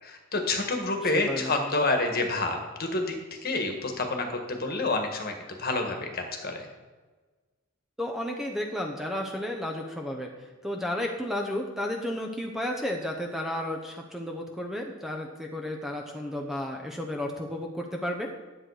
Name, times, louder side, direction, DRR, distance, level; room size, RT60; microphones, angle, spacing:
voice 1, 0.0-3.2 3.4-6.7, left 2 dB, 45° left, 4 dB, 1.5 m, -28 dB
voice 2, 1.3-1.6 8.0-10.3 10.6-18.3, left 1 dB, ahead, 2 dB, 0.8 m, -32 dB
10.5 x 7.7 x 4.8 m, 1.3 s
head